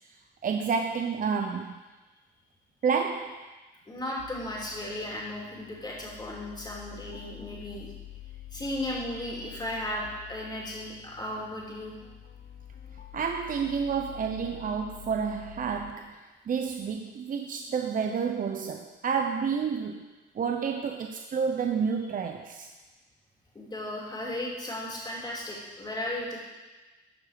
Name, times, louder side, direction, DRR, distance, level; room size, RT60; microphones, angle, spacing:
voice 1, 0.4-1.7 2.8-3.4 13.1-16.2 16.5-22.7, right 6 dB, 45° right, 4 dB, 0.6 m, -30 dB
voice 2, 3.9-7.9 8.5-12.0 23.5-26.4, left 1 dB, 20° left, -3 dB, 2.8 m, -35 dB
sound 1, 4.2-15.9, left 13 dB, 60° left, 0.8 m, -47 dB
13.5 x 4.7 x 5.0 m, 1.2 s
cardioid pair, 90°, 20 cm